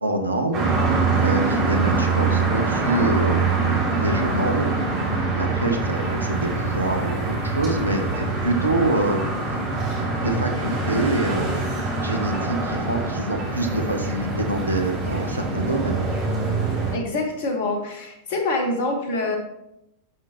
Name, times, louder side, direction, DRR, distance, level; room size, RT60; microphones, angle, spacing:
voice 1, 0.0-3.5 4.0-4.7 5.4-9.6 10.2-11.7 12.0-16.0, right 2 dB, 85° right, 5 dB, 1.0 m, -26 dB
sound 1, 0.5-16.9, right 3 dB, 40° right, 3.2 m, -24 dB
voice 2, 16.9-19.4, left 2 dB, 55° left, 4 dB, 1.6 m, -25 dB
12.0 x 5.9 x 3.1 m, 0.85 s
figure-of-eight pair, 90°, 0 cm